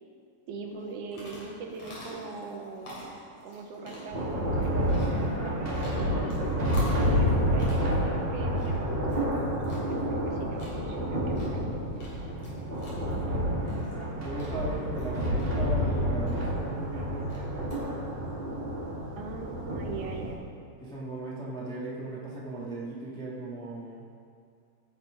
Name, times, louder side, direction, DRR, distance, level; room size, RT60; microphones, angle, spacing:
voice 1, 0.5-3.0 3.4-6.4 7.0-9.4 9.8-11.8 19.2-20.5, right 4 dB, 70° right, 2 dB, 2.1 m, -41 dB
sound 1, 0.7-17.8, left 1 dB, 50° left, 3.8 m, -48 dB
Thunder, 4.1-20.3, equal, 25° right, 1.6 m, -29 dB
voice 2, 13.1-13.4 14.2-17.7 20.8-24.1, right 2 dB, 5° left, -6 dB, 0.6 m, -38 dB
17.5 x 5.9 x 5.1 m, 2.3 s
omnidirectional pair, 4.0 m